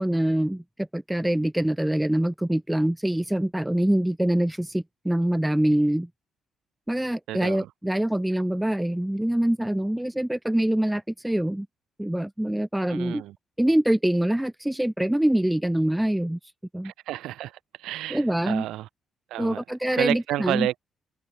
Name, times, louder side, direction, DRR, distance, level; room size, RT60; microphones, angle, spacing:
voice 1, 0.0-6.1 6.9-11.7 12.0-13.2 13.6-16.4 16.7-16.9 18.1-18.6 19.4-20.7, right 1 dB, 5° right, 0.4 m, -24 dB
voice 2, 7.3-7.7 12.9-13.3 16.8-18.9 19.3-19.6 19.9-20.7, right 15 dB, 90° right, 3.4 m, -31 dB
cardioid pair, 90°, 0 cm